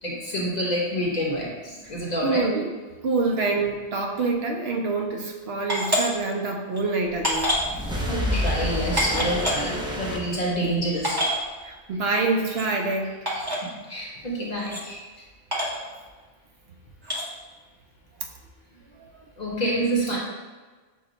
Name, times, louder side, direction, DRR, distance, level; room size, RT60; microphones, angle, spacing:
voice 1, 0.0-2.5 8.1-11.2 13.3-13.4 13.9-15.0 19.4-20.2, right 1 dB, 45° left, -3 dB, 0.8 m, -27 dB
voice 2, 2.2-2.7 3.0-7.5 11.6-13.2 19.0-19.1, right 3 dB, 65° right, 2 dB, 0.7 m, -26 dB
sound 1, 5.7-6.0 6.7-6.8 7.2-7.7 8.4-8.5 9.0-9.6 10.4-10.5 10.6-10.7 11.0-11.4 12.5-12.6 13.3-13.6 14.6-14.8 15.5-15.8 17.0-17.2, equal, 25° right, 0.8 m, -25 dB
sound 2, 7.2-11.0, left 1 dB, 5° right, 0.3 m, -29 dB
6.3 x 2.1 x 3.8 m, 1.3 s
omnidirectional pair, 1.2 m